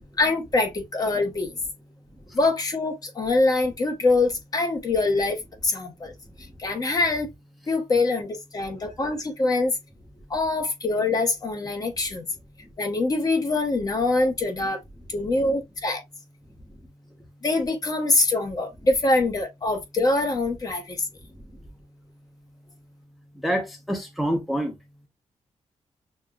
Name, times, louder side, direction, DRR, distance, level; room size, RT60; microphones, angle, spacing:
voice 1, 0.2-1.5 2.3-6.1 6.6-7.3 7.7-9.7 10.3-12.3 12.8-14.8 15.1-16.0 17.4-21.0, left 2 dB, 35° left, 0.9 m, -24 dB
voice 2, 23.3-24.7, equal, ahead, 0.7 m, -27 dB
6.4 x 2.2 x 2.2 m
wide cardioid pair, 150°, 11 cm